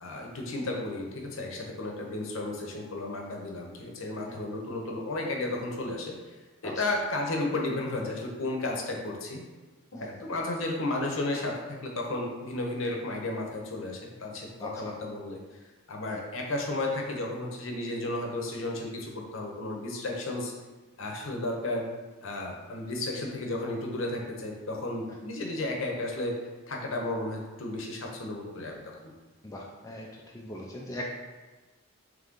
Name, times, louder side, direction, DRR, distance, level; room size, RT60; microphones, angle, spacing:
voice 1, 0.0-6.3 6.6-9.4 9.9-15.4 15.9-20.5 21.0-21.9 22.2-26.3 26.7-29.1, left 2 dB, 65° left, 0 dB, 0.7 m, -33 dB
voice 2, 14.6-15.0 16.1-16.2 29.4-30.1 30.3-31.1, left 1 dB, 15° left, -3 dB, 0.3 m, -40 dB
3.7 x 3.2 x 3.6 m, 1.2 s
head